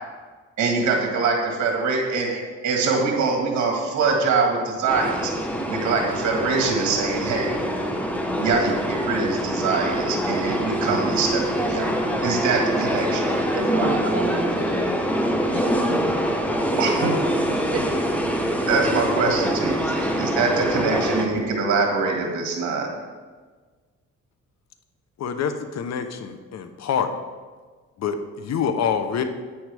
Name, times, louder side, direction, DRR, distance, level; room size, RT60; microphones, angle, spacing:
voice 1, 0.6-5.3 5.7-7.5 8.4-11.9 12.2-13.9 16.8-17.1 18.6-22.9, right 4 dB, 70° right, 1 dB, 1.8 m, -24 dB
sound 1, 4.9-21.3, equal, 5° left, 1.1 m, -24 dB
voice 2, 13.3-14.9 15.5-16.1 17.7-18.0, right 3 dB, 50° right, 3 dB, 1.4 m, -32 dB
voice 3, 25.2-27.1 28.0-29.2, left 7 dB, 60° left, 8 dB, 0.9 m, -26 dB
9.7 x 8.7 x 3.4 m, 1.4 s
cardioid pair, 90°, 30 cm